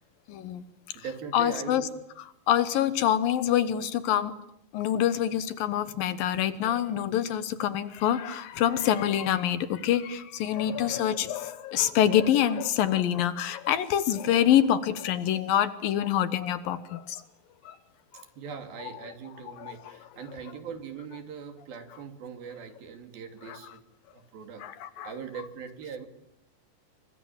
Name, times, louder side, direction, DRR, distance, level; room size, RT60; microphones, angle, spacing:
voice 1, 0.3-0.6 1.3-1.8 2.5-4.3 4.7-17.2 17.7-17.8 24.6-25.1, left 10 dB, 70° left, 13 dB, 2.7 m, -26 dB
voice 2, 0.9-1.9 10.5-11.1 17.7-17.8 18.4-23.8 24.1-24.6 25.0-26.1, right 6 dB, 70° right, 7 dB, 4.2 m, -41 dB
29.0 x 24.0 x 7.3 m, 0.76 s
omnidirectional pair, 4.5 m